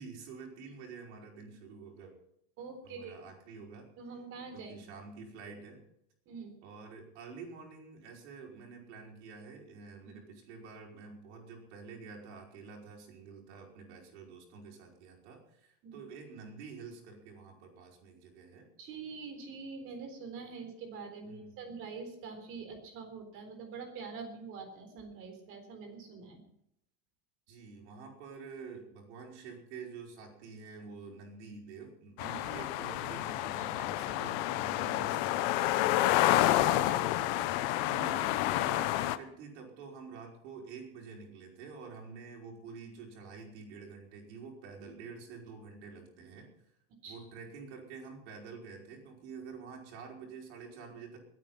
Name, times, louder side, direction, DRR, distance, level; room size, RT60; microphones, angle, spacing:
voice 1, 0.0-2.1 2.8-3.9 4.5-5.8 6.6-18.7 21.2-21.8 27.5-35.9 37.1-46.5 47.1-51.2, right 5 dB, 80° right, 0 dB, 5.3 m, -48 dB
voice 2, 2.6-3.1 4.0-4.8 6.3-6.6 10.0-10.1 15.8-16.0 18.8-26.4 32.2-32.5 36.3-37.1 47.0-47.2, right 4 dB, 40° right, 6 dB, 3.9 m, -45 dB
sound 1, 32.2-39.2, left 15 dB, 60° left, 0.9 m, -29 dB
21.5 x 9.3 x 5.7 m, 0.75 s
supercardioid pair, 155°, 33 cm